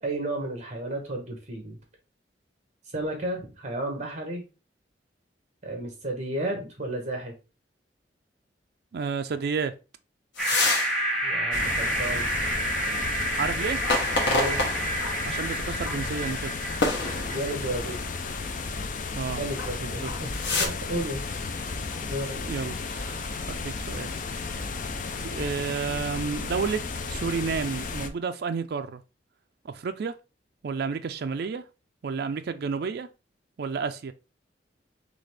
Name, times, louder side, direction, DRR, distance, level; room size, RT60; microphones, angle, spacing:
voice 1, 0.0-1.8 2.9-4.4 5.6-7.3 11.2-12.3 14.2-14.6 17.2-18.0 19.4-21.2 21.6-21.7 22.1-22.4, right 1 dB, 40° right, 1.5 m, -32 dB
voice 2, 8.9-9.7 13.4-13.8 15.3-16.5 19.1-19.4 19.8-20.1 22.4-24.2 25.2-26.8 27.1-29.0 29.6-30.1 30.6-31.6 32.0-33.1 33.6-34.1, right 5 dB, 60° right, 0.4 m, -31 dB
sound 1, 10.4-10.9 11.4-11.5 13.8-15.2 15.8-16.0 16.8-17.7 19.5-19.7 20.0-20.7, left 3 dB, 85° left, 1.1 m, -27 dB
sound 2, 10.4-18.6, right 1 dB, ahead, 1.2 m, -30 dB
sound 3, 11.5-28.1, left 4 dB, 45° left, 0.5 m, -33 dB
4.0 x 3.2 x 3.3 m
head